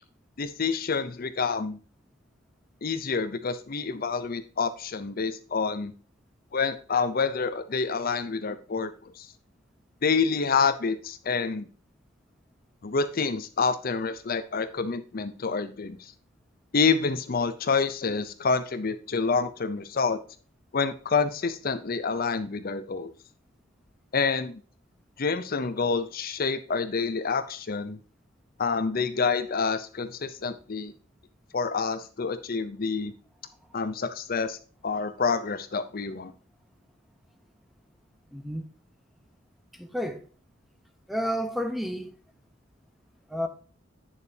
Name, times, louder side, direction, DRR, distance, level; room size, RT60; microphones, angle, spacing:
voice 1, 0.4-1.8 2.8-5.9 6.5-9.3 10.0-11.7 12.8-16.1 16.7-20.2 20.7-23.1 24.1-24.6 25.2-28.0 28.6-30.9 31.5-33.1 33.7-34.6 34.8-36.3, left 5 dB, 50° left, 0.6 m, -28 dB
voice 2, 38.3-38.6 39.7-40.2 41.1-42.2 43.3-43.5, equal, ahead, 0.9 m, -31 dB
8.9 x 6.8 x 2.8 m
head